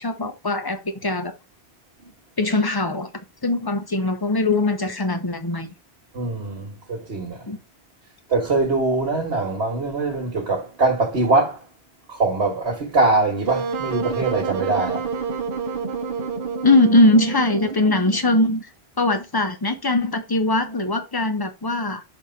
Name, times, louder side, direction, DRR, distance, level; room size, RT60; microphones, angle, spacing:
voice 1, 0.0-1.3 2.4-3.1 3.4-5.7 7.5-7.6 16.6-18.7 19.0-22.0, left 2 dB, 20° left, 1.1 m, -21 dB
voice 2, 6.1-7.5 8.3-11.6 12.1-15.1, right 3 dB, 80° right, 1.9 m, -22 dB
Wind instrument woodwind instrument, 13.5-18.6, right 5 dB, 55° right, 1.0 m, -29 dB
6.5 x 3.7 x 5.5 m
omnidirectional pair, 1.1 m